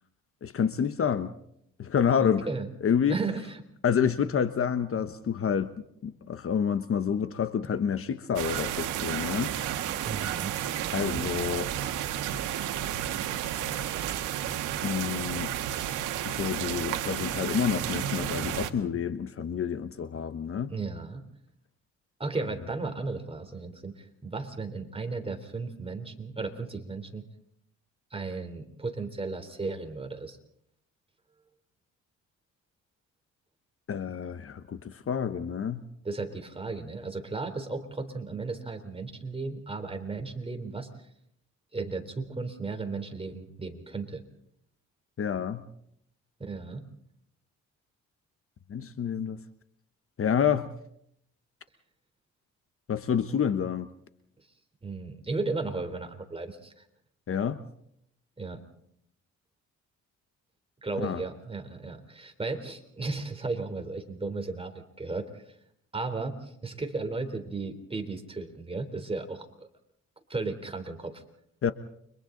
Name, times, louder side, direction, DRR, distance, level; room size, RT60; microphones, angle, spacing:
voice 1, 0.4-1.3 1.8-2.5 2.8-3.2 3.8-9.5 10.9-11.7 14.8-15.5 16.2-20.7 33.9-35.8 45.2-45.6 48.7-49.4 50.2-50.7 52.9-53.9 57.3-57.6 61.0-61.2 71.6-71.7, left 7 dB, 45° left, 11 dB, 1.2 m, -28 dB
voice 2, 2.2-2.7 3.1-3.5 10.0-10.6 20.7-21.2 22.2-27.2 28.1-30.4 36.0-40.9 41.7-44.2 46.4-46.8 54.8-56.8 58.4-58.6 60.8-65.5 65.9-69.7 70.3-71.2, right 3 dB, 20° right, 6 dB, 3.7 m, -35 dB
sound 1, 8.4-18.7, right 11 dB, 90° right, 1.7 m, -32 dB
30.0 x 25.0 x 3.9 m, 0.72 s
cardioid pair, 90°, 30 cm